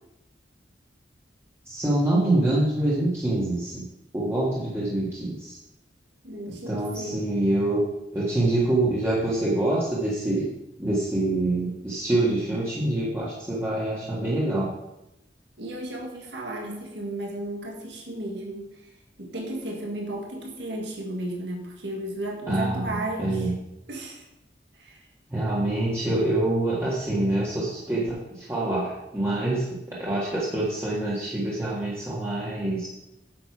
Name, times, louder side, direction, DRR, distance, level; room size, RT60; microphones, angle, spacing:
voice 1, 1.6-3.8 4.1-5.6 6.7-7.8 8.1-10.5 10.8-14.7 22.5-23.5 25.3-32.9, right 1 dB, 15° right, -7 dB, 1.7 m, -25 dB
voice 2, 6.2-7.3 15.6-23.5 23.9-24.3 24.7-25.1 25.5-25.7, right 1 dB, 80° right, 0 dB, 1.8 m, -34 dB
9.2 x 6.8 x 4.8 m, 0.91 s
head